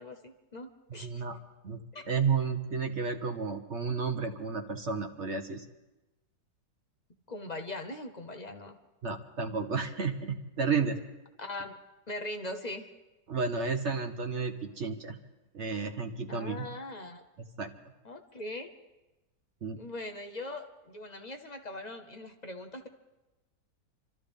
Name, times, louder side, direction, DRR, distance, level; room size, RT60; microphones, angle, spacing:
voice 1, 0.0-1.2 1.9-2.0 7.3-8.8 11.4-11.7 12.1-12.9 16.3-17.2 18.0-18.7 19.7-22.9, left 2 dB, 40° left, 6 dB, 0.6 m, -41 dB
voice 2, 0.9-1.4 1.6-1.8 2.1-5.6 9.0-11.0 13.3-15.2 15.5-16.7 17.6-17.7 19.6-19.8, right 5 dB, 50° right, 5 dB, 1.0 m, -32 dB
27.5 x 13.0 x 3.5 m, 1.0 s
omnidirectional pair, 1.8 m